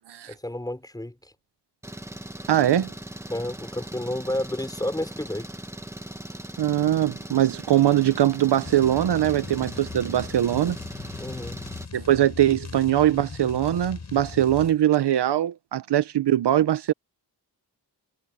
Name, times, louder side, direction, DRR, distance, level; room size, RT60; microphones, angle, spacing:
voice 1, 0.3-1.3 3.3-5.5 11.2-11.6, left 1 dB, 10° left, 5.4 m, -31 dB
Engine, 1.8-11.9, right 1 dB, 5° right, 1.6 m, -39 dB
voice 2, 2.5-2.9 6.6-10.8 11.9-16.9, right 12 dB, 75° right, 0.8 m, -21 dB
sound 1, 8.6-14.8, left 4 dB, 40° left, 6.8 m, -39 dB
wide cardioid pair, 160°, 41 cm